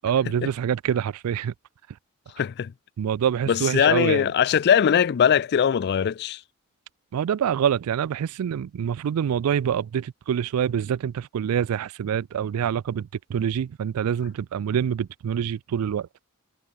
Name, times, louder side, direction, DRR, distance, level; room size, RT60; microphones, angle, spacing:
voice 1, 0.0-1.5 3.0-4.3 7.1-16.1, right 8 dB, 90° right, 0.3 m, -26 dB
voice 2, 2.4-2.7 3.5-6.4, left 8 dB, 50° left, 0.4 m, -21 dB
head